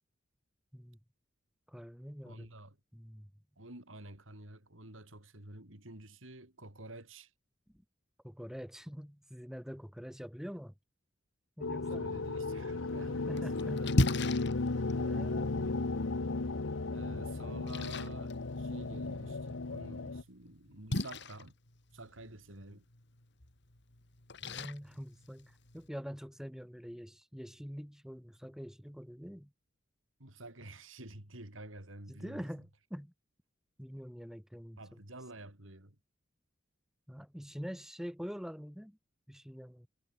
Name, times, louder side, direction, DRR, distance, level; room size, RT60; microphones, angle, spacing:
voice 1, 1.7-2.5 2.9-3.3 8.2-10.7 11.6-12.1 13.1-14.0 14.9-15.7 24.4-29.5 32.1-33.1 33.8-35.0 37.1-39.0 39.3-39.9, equal, ahead, 2.6 m, -45 dB
voice 2, 2.2-2.8 3.6-7.3 11.8-14.0 16.9-21.5 21.9-22.9 30.2-32.5 34.8-36.0, right 1 dB, 90° right, 5.4 m, -50 dB
sound 1, 11.6-20.2, left 3 dB, 85° left, 1.0 m, -35 dB
Splash splatter, 12.9-25.9, left 1 dB, 60° left, 2.8 m, -39 dB
head